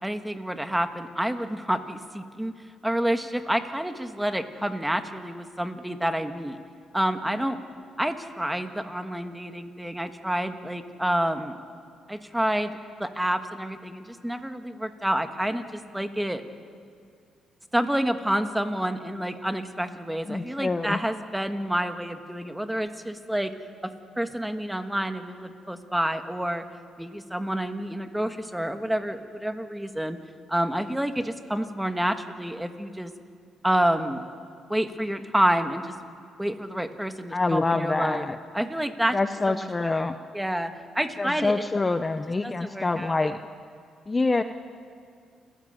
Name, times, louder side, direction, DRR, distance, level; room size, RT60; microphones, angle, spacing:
voice 1, 0.0-2.5 2.8-6.6 6.9-7.6 8.0-11.6 12.1-16.4 17.7-23.5 23.8-26.6 27.0-30.2 30.5-33.1 33.6-34.2 34.7-36.0 36.4-38.2 38.5-39.2 39.5-41.6 42.4-43.2, right 1 dB, 5° right, 7 dB, 1.6 m, -28 dB
voice 2, 20.3-21.0 37.3-38.4 39.1-40.1 41.2-43.4 44.1-44.4, left 3 dB, 25° left, 9 dB, 0.7 m, -26 dB
29.5 x 14.5 x 9.1 m, 2.2 s
cardioid pair, 90°, 0 cm